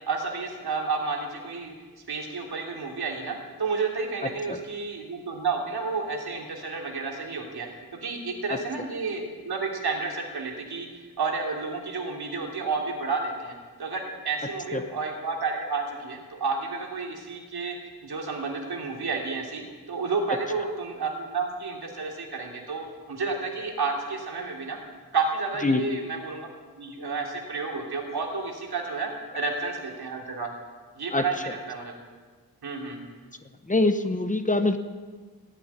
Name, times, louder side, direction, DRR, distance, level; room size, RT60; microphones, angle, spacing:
voice 1, 0.1-1.7 2.1-7.7 8.0-13.5 13.8-17.8 18.0-24.8 25.1-26.5 26.8-30.5 31.0-31.9 32.6-33.0, right 4 dB, 80° right, 1 dB, 3.0 m, -31 dB
voice 2, 33.7-34.8, left 2 dB, 20° left, 8 dB, 0.9 m, -23 dB
18.0 x 8.0 x 9.7 m, 1.5 s
wide cardioid pair, 135°, 38 cm